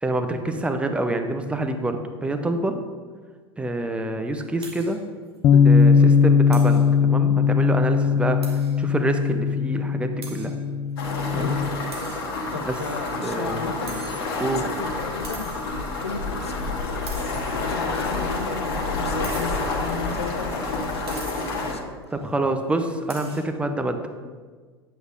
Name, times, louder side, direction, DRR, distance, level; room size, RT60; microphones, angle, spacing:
voice 1, 0.0-2.8 3.6-5.0 5.5-10.5 11.3-11.6 12.6-12.8 13.2-13.8 14.4-14.6 22.1-24.0, right 2 dB, 10° right, 6 dB, 0.7 m, -27 dB
sound 1, 4.6-5.0 5.4-5.5 5.8-5.9 6.5-6.9 8.4-8.8 9.3-9.4 10.2-10.6 11.9-12.7 13.9-14.6 15.2-15.8 17.1-17.8 19.2-19.8 21.1-21.7 23.1-23.5, right 4 dB, 75° right, 1.3 m, -42 dB
Bass guitar, 5.4-11.7, left 6 dB, 30° left, 0.4 m, -19 dB
sound 2, 11.0-21.7, left 3 dB, 60° left, 1.5 m, -29 dB
voice 2, 11.3-12.2 12.5-14.0 14.3-15.5 16.0-16.9 17.2-21.9, left 4 dB, 80° left, 7 dB, 0.6 m, -35 dB
8.8 x 8.0 x 2.6 m, 1.5 s
figure-of-eight pair, 80°, 14 cm